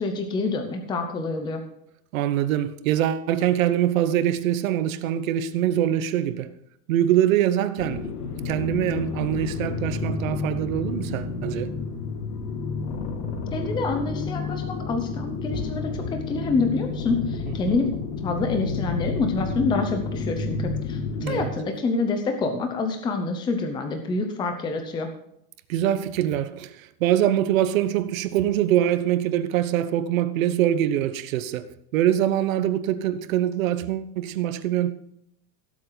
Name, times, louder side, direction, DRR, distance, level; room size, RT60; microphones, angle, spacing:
voice 1, 0.0-1.6 13.5-17.9 18.2-25.1, left 3 dB, 10° left, 0.8 m, -27 dB
voice 2, 2.1-6.5 6.9-8.1 8.4-11.7 17.7-17.8 21.2-21.5 25.7-34.9, right 11 dB, 60° right, 1.1 m, -24 dB
sound 1, 7.8-21.5, left 4 dB, 90° left, 2.3 m, -30 dB
17.0 x 7.6 x 4.0 m
supercardioid pair, 170°, 45 cm